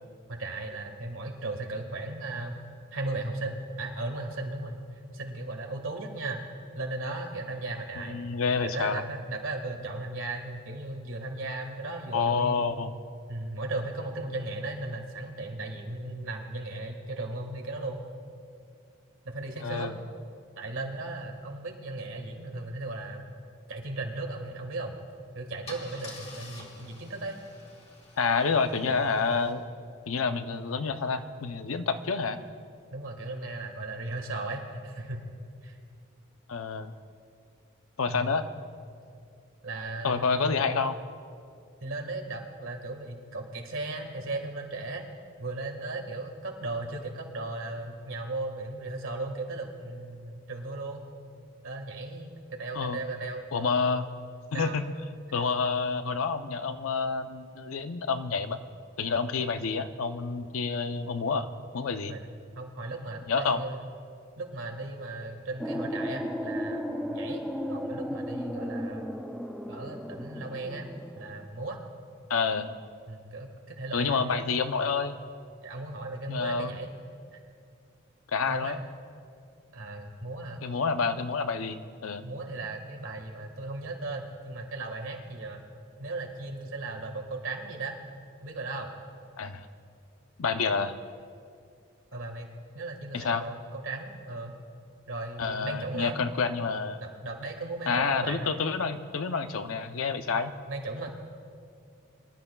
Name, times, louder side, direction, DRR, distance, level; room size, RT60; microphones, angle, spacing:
voice 1, 0.3-2.6 2.9-4.8 5.1-6.4 6.7-8.2 8.6-12.6 13.3-18.0 19.2-19.9 20.6-23.3 23.7-24.9 25.3-27.4 29.0-29.1 32.9-35.2 35.6-35.8 38.1-38.3 39.6-40.5 41.8-45.0 45.4-51.0 51.6-53.7 54.5-54.8 62.1-62.3 62.6-63.8 64.4-69.1 69.7-70.9 71.1-71.8 73.1-74.5 74.8-74.9 75.6-76.9 77.3-77.4 78.5-78.9 79.7-80.7 82.2-85.6 86.0-87.9 88.4-88.9 92.1-92.5 92.7-94.5 95.1-96.2 97.0-98.6 100.7-101.1, right 2 dB, 75° right, 3 dB, 1.7 m, -36 dB
voice 2, 8.0-9.0 12.1-12.9 19.6-19.9 28.2-29.6 30.1-32.4 36.5-36.9 38.0-38.5 40.0-41.0 52.7-53.0 53.5-54.1 54.5-54.8 55.3-58.6 59.0-61.5 61.7-62.2 63.3-63.6 72.3-72.7 73.9-75.2 76.3-76.8 78.3-78.8 80.6-82.2 89.4-89.7 90.4-90.9 93.1-93.5 95.4-97.0 97.9-100.5, left 5 dB, 85° left, 9 dB, 0.6 m, -28 dB
Car / Engine starting / Idling, 24.9-25.1 25.7-29.5, left 2 dB, 30° left, 1.8 m, -48 dB
sound 1, 65.6-71.5, equal, ahead, 0.4 m, -35 dB
24.0 x 12.0 x 2.3 m, 2.4 s
head